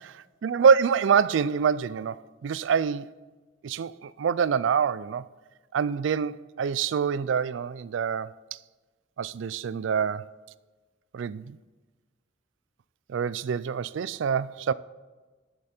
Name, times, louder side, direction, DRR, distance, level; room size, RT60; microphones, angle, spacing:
voice 1, 0.4-3.1 3.6-5.3 5.7-8.3 9.2-10.2 11.1-11.6 13.1-14.7, right 6 dB, 85° right, 0.4 m, -25 dB
11.0 x 7.5 x 4.3 m
head